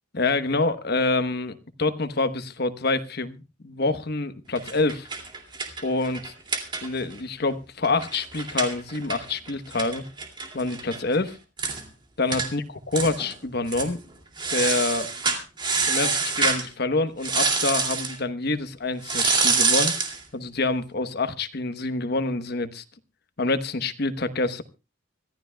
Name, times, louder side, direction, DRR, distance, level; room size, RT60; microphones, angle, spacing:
voice 1, 0.1-5.1 5.8-6.3 6.8-10.0 10.5-11.4 12.2-12.6 12.9-14.0 14.5-15.1 15.9-20.0 20.3-22.8 23.4-24.6, left 3 dB, 55° left, 10 dB, 1.1 m, -26 dB
sound 1, 4.6-7.2 7.5-7.6 7.8-11.0 11.3-11.4 11.6-11.8 12.3-12.5 12.9-13.3 13.7-13.9 14.4-16.7 17.2-18.2 19.0-20.2, right 4 dB, 25° right, 2.5 m, -26 dB
25.0 x 14.0 x 2.3 m, 0.29 s
head